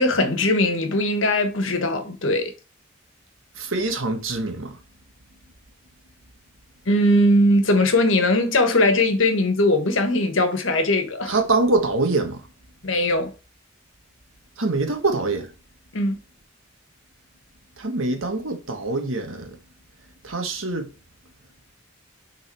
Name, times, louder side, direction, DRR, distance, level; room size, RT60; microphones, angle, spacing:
voice 1, 0.0-2.5 6.9-11.4 12.8-13.3 15.9-16.2, left 1 dB, 75° left, 1.4 m, -20 dB
voice 2, 3.6-4.8 11.3-12.4 14.6-15.5 17.8-19.5 20.2-20.9, right 3 dB, 85° right, 1.6 m, -24 dB
6.5 x 3.8 x 4.7 m
head